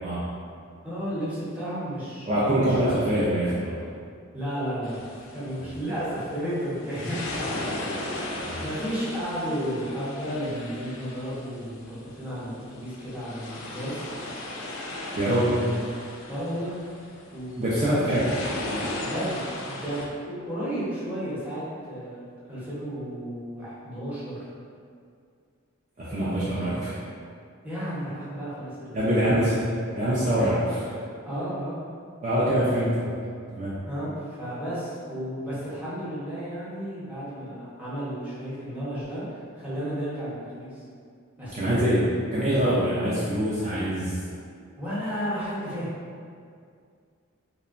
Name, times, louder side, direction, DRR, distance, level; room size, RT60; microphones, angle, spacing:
voice 1, 0.8-2.8 4.3-5.1 5.3-13.9 15.2-16.7 17.3-18.1 19.0-24.5 26.1-26.8 27.6-29.4 30.3-30.6 31.2-31.9 33.9-40.8 41.4-42.3 44.8-45.9, equal, 5° right, -12 dB, 0.7 m, -33 dB
voice 2, 2.3-3.8 8.4-8.6 15.1-15.6 17.6-18.3 26.0-27.0 28.9-29.6 29.9-30.8 32.2-33.2 33.5-33.8 41.5-44.2, right 1 dB, 35° right, -9 dB, 0.4 m, -24 dB
sound 1, 4.8-20.1, left 1 dB, 60° left, 0.3 m, -37 dB
2.8 x 2.1 x 2.4 m, 2.2 s
head